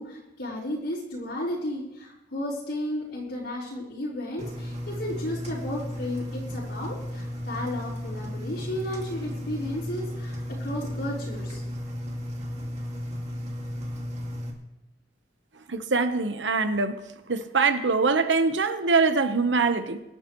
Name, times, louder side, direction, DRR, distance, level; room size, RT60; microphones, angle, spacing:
voice 1, 0.0-11.6, left 1 dB, 70° left, -9 dB, 4.4 m, -33 dB
Engine, 4.4-14.5, left 1 dB, 40° right, 2.3 m, -34 dB
voice 2, 15.7-17.0 17.3-20.0, right 4 dB, 80° right, 9 dB, 1.1 m, -23 dB
24.5 x 11.5 x 3.2 m, 0.96 s
head